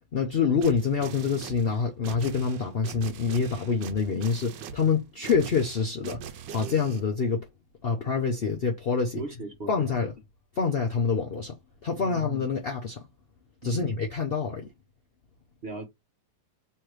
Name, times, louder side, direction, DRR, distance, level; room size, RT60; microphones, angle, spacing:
voice 1, 0.1-7.5 7.8-9.2 9.7-10.1 10.6-13.0 13.6-14.7, left 5 dB, 85° left, 0.5 m, -26 dB
sound 1, 0.6-7.0, right 7 dB, 80° right, 1.3 m, -42 dB
voice 2, 9.1-9.8 12.0-12.2 13.6-14.0 15.6-15.9, right 3 dB, 40° right, 1.0 m, -37 dB
3.4 x 3.2 x 4.7 m
omnidirectional pair, 2.0 m